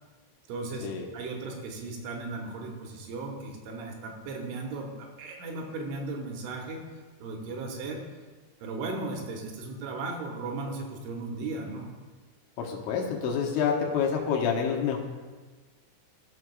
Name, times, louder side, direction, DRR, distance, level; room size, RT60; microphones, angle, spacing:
voice 1, 0.5-6.8 7.2-8.1 8.6-11.9, right 3 dB, 85° right, 1 dB, 3.3 m, -36 dB
voice 2, 12.6-15.0, left 6 dB, 80° left, 0 dB, 3.2 m, -27 dB
16.0 x 6.1 x 2.3 m, 1.4 s
omnidirectional pair, 5.5 m